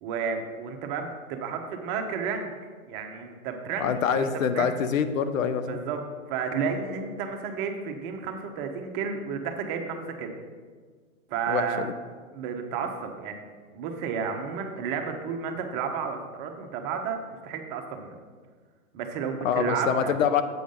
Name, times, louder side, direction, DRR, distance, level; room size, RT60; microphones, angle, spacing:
voice 1, 0.0-2.5 2.9-4.7 5.7-6.0 6.3-10.4 11.3-11.9 12.3-13.5 13.7-18.2 18.9-20.2, right 6 dB, 35° right, 4 dB, 1.0 m, -32 dB
voice 2, 3.8-5.8 11.5-11.9 19.4-20.4, left 7 dB, 70° left, 11 dB, 0.7 m, -25 dB
7.9 x 5.0 x 5.4 m, 1.5 s
hypercardioid pair, 120°, 42 cm